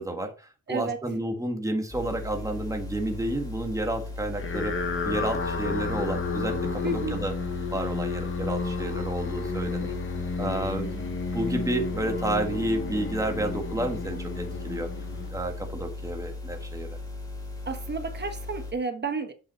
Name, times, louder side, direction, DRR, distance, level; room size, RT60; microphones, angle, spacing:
voice 1, 0.0-4.7 5.0-7.3 7.7-9.9 10.4-14.9 15.3-17.0, right 1 dB, 10° right, 1.6 m, -31 dB
voice 2, 0.7-1.0 6.8-7.2 17.7-19.3, right 3 dB, 35° right, 1.2 m, -31 dB
sound 1, 1.9-18.7, left 2 dB, 10° left, 2.6 m, -38 dB
sound 2, 4.3-15.8, left 4 dB, 40° left, 1.3 m, -32 dB
7.9 x 5.5 x 4.3 m
wide cardioid pair, 130°, 32 cm